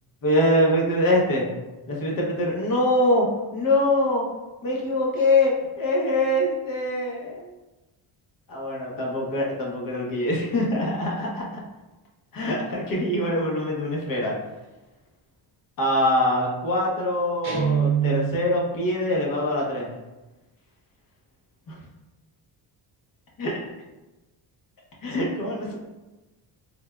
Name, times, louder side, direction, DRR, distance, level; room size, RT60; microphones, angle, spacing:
voice 1, 0.2-1.5 1.9-4.3 4.6-7.5 8.5-11.5 12.3-14.4 15.8-19.9 21.7-21.8 23.4-23.5 25.0-25.7, left 1 dB, 45° left, -3 dB, 0.9 m, -24 dB
Guitar, 17.4-18.6, right 8 dB, 65° right, 0.8 m, -24 dB
3.3 x 2.3 x 2.2 m, 1.1 s
cardioid pair, 105°, 47 cm